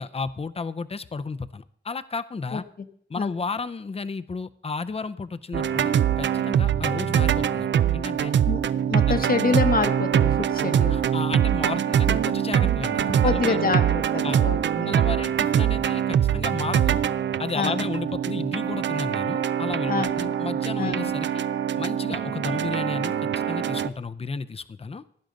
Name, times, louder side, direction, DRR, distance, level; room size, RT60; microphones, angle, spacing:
voice 1, 0.0-2.6 3.1-8.4 10.9-13.6 14.2-14.4 14.9-17.0 17.4-21.4 21.8-25.0, left 4 dB, 30° left, 13 dB, 0.5 m, -33 dB
sound 1, 5.5-23.9, right 9 dB, 75° right, 0.4 m, -23 dB
voice 2, 8.5-11.0 12.1-12.2 13.2-15.1 17.5-17.9 19.9-20.3 20.8-21.1, left 5 dB, 50° left, 9 dB, 1.0 m, -27 dB
15.5 x 10.5 x 3.8 m, 0.64 s
wide cardioid pair, 90°, 19 cm